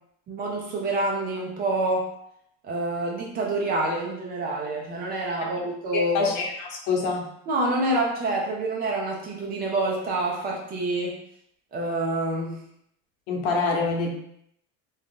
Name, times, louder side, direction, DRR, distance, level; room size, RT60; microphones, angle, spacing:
voice 1, 0.3-2.1 2.6-6.3 7.5-11.2 11.7-12.6, right 2 dB, 30° right, -1 dB, 0.5 m, -27 dB
voice 2, 5.9-7.2 13.3-14.1, left 4 dB, 65° left, -1 dB, 0.9 m, -25 dB
2.7 x 2.4 x 3.6 m, 0.73 s
cardioid pair, 165°, 33 cm